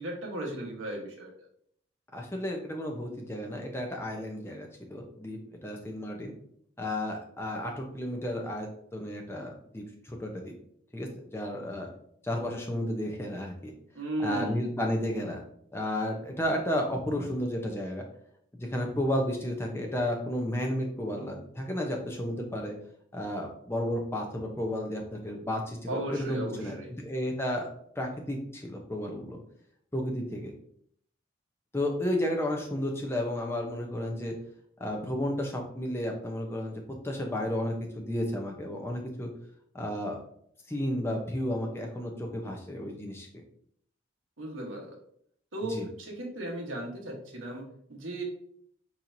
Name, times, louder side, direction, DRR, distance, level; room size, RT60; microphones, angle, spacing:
voice 1, 0.0-1.3 13.9-14.6 25.9-26.9 44.4-44.9 45.5-48.2, right 1 dB, 80° right, 0 dB, 1.2 m, -36 dB
voice 2, 2.1-6.3 6.8-10.5 10.9-11.9 12.2-13.7 14.2-15.4 15.7-18.0 18.5-22.7 23.1-26.8 27.0-27.7 28.0-29.4 29.9-30.5 31.7-34.3 34.8-39.3 39.7-40.2 40.7-43.3 45.7-45.9, left 1 dB, 10° left, 1 dB, 0.7 m, -32 dB
4.4 x 4.3 x 2.6 m, 0.66 s
head